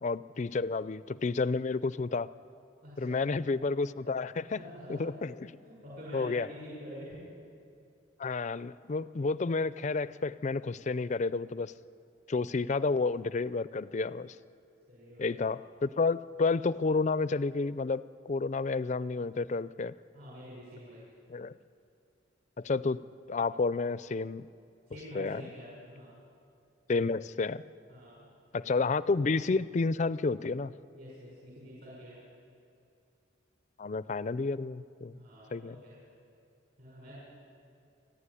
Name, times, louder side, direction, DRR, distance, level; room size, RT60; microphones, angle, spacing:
voice 1, 0.0-2.3 3.0-4.6 4.9-5.5 6.1-6.5 8.2-11.7 12.3-14.3 15.2-19.9 21.3-21.5 22.6-23.0 23.3-24.5 25.1-25.4 26.9-27.6 28.5-30.7 33.8-35.2 35.5-35.8, left 4 dB, 35° left, 17 dB, 0.4 m, -30 dB
voice 2, 2.8-3.4 4.5-5.2 5.6-7.2 14.9-15.4 20.1-21.0 24.9-26.1 27.9-28.3 30.9-32.2 35.1-36.0 36.8-37.1, equal, 55° right, -6 dB, 6.2 m, -47 dB
29.0 x 10.5 x 9.9 m, 2.5 s
head